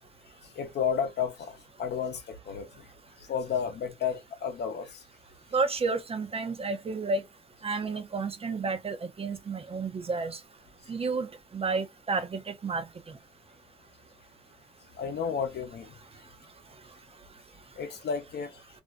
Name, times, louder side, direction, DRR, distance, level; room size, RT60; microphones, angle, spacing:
voice 1, 0.5-2.9 3.3-5.0 15.0-15.9 17.8-18.6, left 7 dB, 60° left, 0.7 m, -32 dB
voice 2, 5.5-7.2 7.6-10.4 10.9-11.3 11.5-12.8, right 4 dB, 30° right, 0.5 m, -31 dB
2.5 x 2.1 x 2.3 m
cardioid pair, 90°, 20 cm